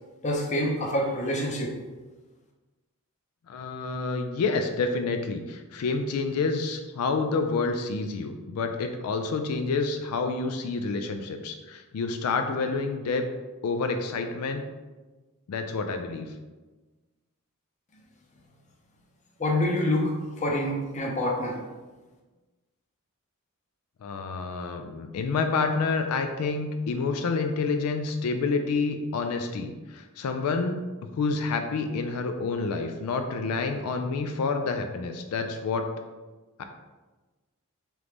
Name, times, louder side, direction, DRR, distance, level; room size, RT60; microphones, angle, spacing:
voice 1, 0.2-1.7 19.4-21.6, left 1 dB, 35° left, 0 dB, 0.6 m, -26 dB
voice 2, 3.5-13.3 13.6-14.6 15.5-16.3 24.0-30.8 31.1-35.9 36.6-36.7, left 4 dB, 85° left, 6 dB, 0.4 m, -28 dB
3.7 x 3.1 x 3.4 m, 1.2 s
head